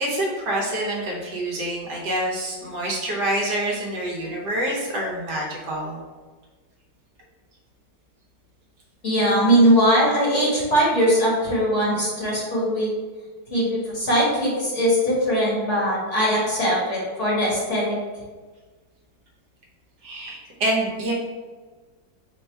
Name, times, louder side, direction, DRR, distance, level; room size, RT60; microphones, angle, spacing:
voice 1, 0.0-6.0 20.0-21.1, right 1 dB, 65° right, -3 dB, 1.4 m, -26 dB
voice 2, 9.0-12.9 13.5-18.0, equal, 45° left, -6 dB, 1.4 m, -20 dB
4.3 x 2.2 x 4.3 m, 1.3 s
omnidirectional pair, 2.0 m